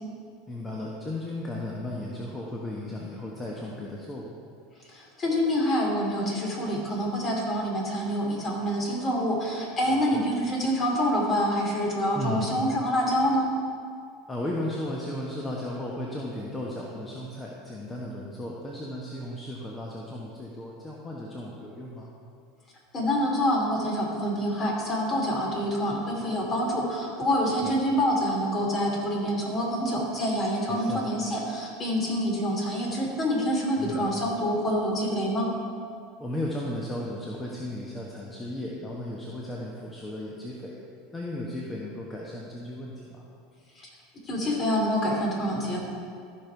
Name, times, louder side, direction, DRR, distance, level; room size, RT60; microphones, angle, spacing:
voice 1, 0.5-4.3 9.8-10.2 12.1-12.5 14.3-22.1 27.6-27.8 30.7-31.1 33.7-34.1 36.2-40.8 41.1-43.2, left 1 dB, 15° left, -3 dB, 1.2 m, -35 dB
voice 2, 4.9-13.5 22.9-35.5 43.8-43.9 44.3-45.8, equal, 35° left, -1 dB, 2.7 m, -26 dB
14.0 x 5.4 x 4.7 m, 2.3 s
hypercardioid pair, 100°, 0 cm